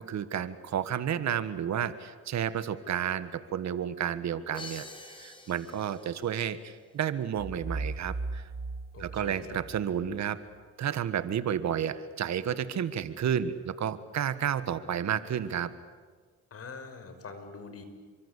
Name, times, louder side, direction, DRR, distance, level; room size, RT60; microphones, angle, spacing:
voice 1, 0.0-8.5 9.0-10.4 10.8-15.7, right 9 dB, 65° right, 13 dB, 1.7 m, -31 dB
Crash cymbal, 4.5-6.4, left 2 dB, 15° left, 5.0 m, -46 dB
sound 1, 7.4-10.2, right 3 dB, 30° right, 2.1 m, -37 dB
voice 2, 8.9-9.6 16.5-17.8, left 4 dB, 50° left, 8 dB, 5.7 m, -44 dB
28.5 x 24.5 x 8.4 m, 1.5 s
cardioid pair, 90°, 30 cm